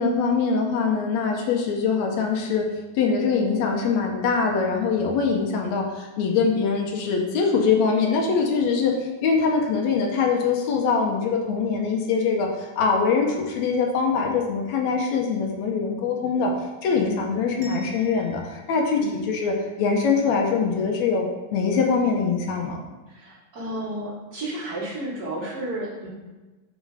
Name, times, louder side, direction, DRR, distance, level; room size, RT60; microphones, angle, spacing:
voice 1, 0.0-2.7 2.9-8.9 9.2-16.5 16.8-22.8, left 5 dB, 70° left, 1 dB, 1.8 m, -23 dB
voice 2, 17.0-17.3 18.9-19.3 23.1-26.1, right 1 dB, 30° right, -9 dB, 2.6 m, -32 dB
sound 1, 17.6-20.4, left 1 dB, 50° right, 1.4 m, -49 dB
6.2 x 5.1 x 4.8 m, 1.2 s
omnidirectional pair, 4.0 m